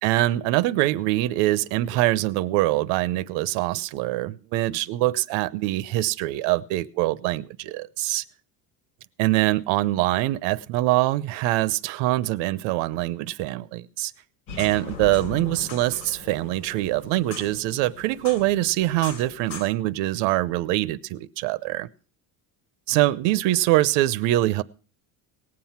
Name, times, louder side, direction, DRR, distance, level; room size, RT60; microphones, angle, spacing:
voice 1, 0.0-8.2 9.2-14.1 14.6-21.9 22.9-24.6, right 16 dB, 85° right, 0.8 m, -24 dB
sound 1, 14.5-19.6, left 4 dB, 75° left, 4.9 m, -39 dB
18.5 x 7.7 x 5.7 m
cardioid pair, 175°, 42 cm